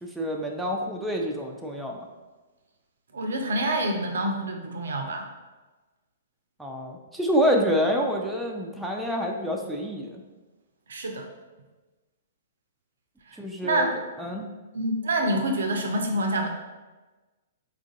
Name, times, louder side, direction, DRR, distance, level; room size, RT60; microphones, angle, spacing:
voice 1, 0.0-2.1 6.6-10.2 13.4-13.9 14.2-14.5, equal, 5° right, 0 dB, 0.4 m, -27 dB
voice 2, 3.1-5.2 10.9-11.3 13.3-13.9 14.3-14.4 14.7-16.5, right 1 dB, 65° right, 3 dB, 0.5 m, -27 dB
4.5 x 2.4 x 2.6 m, 1.2 s
figure-of-eight pair, 110°, 0 cm